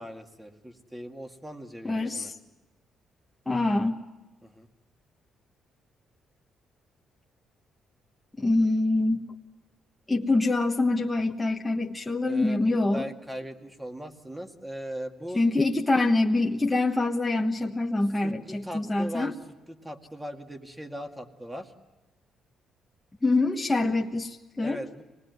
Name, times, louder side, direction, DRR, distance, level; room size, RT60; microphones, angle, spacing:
voice 1, 0.0-2.3 4.4-4.7 12.3-15.4 18.2-19.4 19.7-21.7 24.6-25.0, equal, 10° right, 5 dB, 2.1 m, -39 dB
voice 2, 1.8-2.3 3.5-3.9 8.4-9.2 10.1-13.0 15.3-19.3 23.2-24.8, left 2 dB, 15° left, 0 dB, 1.3 m, -25 dB
25.0 x 20.0 x 9.4 m, 1.1 s
cardioid pair, 90°, 0 cm